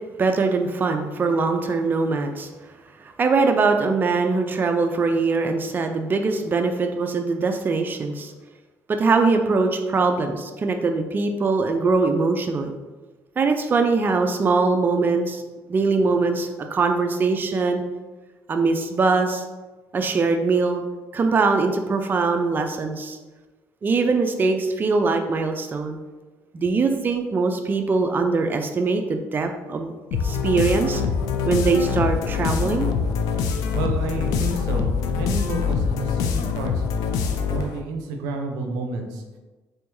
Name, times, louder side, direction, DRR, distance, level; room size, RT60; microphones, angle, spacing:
voice 1, 0.2-2.5 3.0-8.3 8.9-12.7 13.4-15.4 15.7-17.8 18.5-19.4 19.9-20.8 21.1-23.2 23.8-26.0 26.5-29.9 30.2-31.0 31.5-32.9, right 4 dB, 35° right, 5 dB, 0.4 m, -22 dB
sound 1, 30.1-37.8, left 6 dB, 85° left, 0.4 m, -24 dB
voice 2, 33.7-36.9 37.5-39.2, right 3 dB, 90° right, 4 dB, 0.5 m, -30 dB
3.8 x 3.3 x 3.1 m, 1.2 s
cardioid pair, 85°, 6 cm